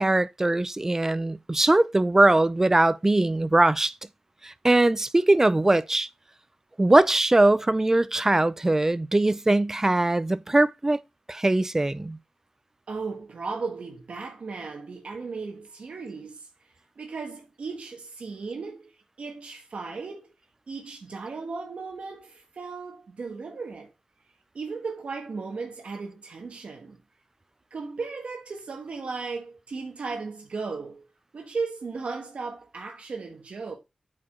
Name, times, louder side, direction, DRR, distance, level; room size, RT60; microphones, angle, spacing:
voice 1, 0.0-3.9 4.4-6.1 6.8-11.0 11.3-12.2, right 2 dB, 20° right, 0.4 m, -21 dB
voice 2, 12.9-20.3 20.7-23.9 24.5-27.0 27.7-31.1 31.3-33.8, right 4 dB, 70° right, 1.4 m, -36 dB
8.4 x 4.8 x 3.6 m
wide cardioid pair, 95°, 2 cm